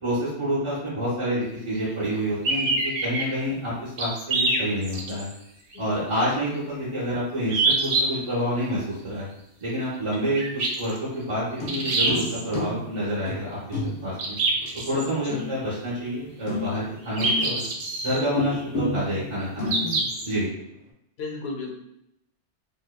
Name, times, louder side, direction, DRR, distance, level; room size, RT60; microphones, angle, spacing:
voice 1, 0.0-5.3 5.8-9.3 9.6-14.4 14.9-17.6 18.0-20.5, equal, 35° right, -8 dB, 0.5 m, -28 dB
sound 1, 2.4-3.2 4.0-5.3 5.7-5.8 7.5-8.0 10.4-11.0 11.7-12.4 14.2-15.0 17.2-18.2 19.7-20.3, right 3 dB, 80° right, 0.9 m, -25 dB
sound 2, 11.5-16.2 16.4-17.8 18.3-20.4 20.7-20.8, left 2 dB, 90° left, 1.2 m, -32 dB
voice 2, 21.2-21.7, left 3 dB, 65° left, 0 dB, 0.8 m, -33 dB
2.7 x 2.0 x 2.2 m, 0.78 s
omnidirectional pair, 1.2 m